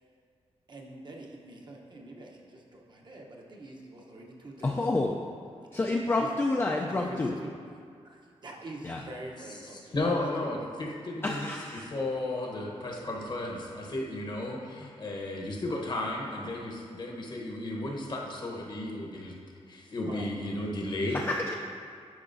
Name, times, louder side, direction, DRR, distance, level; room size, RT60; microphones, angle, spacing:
voice 1, 0.7-4.9 5.7-5.8 6.2-6.3 6.7-7.5 8.0-10.7 20.1-20.3, right 2 dB, 40° right, -1 dB, 0.8 m, -45 dB
voice 2, 4.6-5.1 5.7-7.4 8.8-9.0 11.2-11.9 21.1-21.5, left 2 dB, 20° left, 0 dB, 0.4 m, -29 dB
voice 3, 9.9-19.4 19.7-21.2, left 2 dB, 40° left, -1 dB, 0.9 m, -34 dB
10.5 x 4.8 x 2.6 m, 2.2 s
wide cardioid pair, 120°, 11 cm